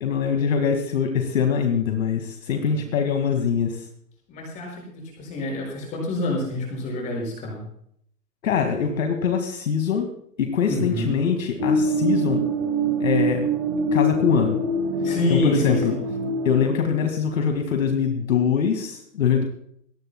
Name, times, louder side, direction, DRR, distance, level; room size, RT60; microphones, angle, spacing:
voice 1, 0.0-3.9 8.4-10.1 10.4-12.4 13.0-13.5 13.9-14.6 15.3-15.9 16.5-19.4, left 7 dB, 50° left, 4 dB, 2.1 m, -23 dB
voice 2, 2.5-2.8 4.3-7.6 10.7-11.1 15.0-16.0, left 2 dB, 15° left, -1 dB, 5.6 m, -27 dB
sound 1, 11.6-16.7, right 1 dB, 15° right, 0.8 m, -24 dB
21.5 x 18.5 x 2.2 m, 0.68 s
hypercardioid pair, 180°, 50 cm